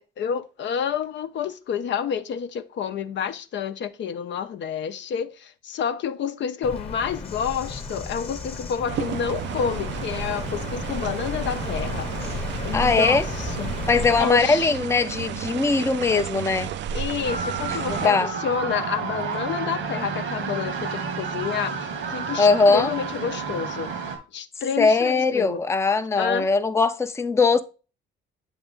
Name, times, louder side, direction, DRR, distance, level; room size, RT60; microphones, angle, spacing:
voice 1, 0.0-13.7 14.2-14.7 16.9-23.9 24.3-25.6 26.1-26.5, left 7 dB, 65° left, 0.6 m, -29 dB
Bird vocalization bird call bird song, 6.6-14.2, left 3 dB, 30° left, 1.0 m, -33 dB
sound 1, 8.9-18.1, right 10 dB, 65° right, 0.4 m, -33 dB
voice 2, 12.7-13.3 13.9-16.7 17.9-18.3 22.4-22.9 24.8-27.6, left 4 dB, 15° left, 0.5 m, -20 dB
sound 2, 17.2-24.2, right 5 dB, 90° right, 1.6 m, -30 dB
7.9 x 3.6 x 3.6 m
cardioid pair, 90°, 20 cm